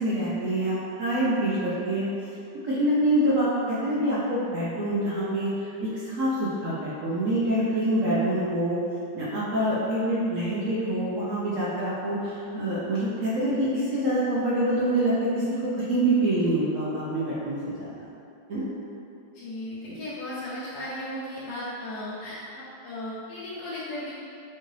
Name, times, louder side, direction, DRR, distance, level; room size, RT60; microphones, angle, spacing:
voice 1, 0.0-2.1 2.6-8.8 9.1-18.0 18.5-18.6, right 1 dB, 65° right, -9 dB, 0.7 m, -26 dB
voice 2, 19.3-24.2, left 1 dB, 70° left, -9 dB, 1.0 m, -36 dB
4.5 x 2.5 x 3.1 m, 2.6 s
omnidirectional pair, 2.1 m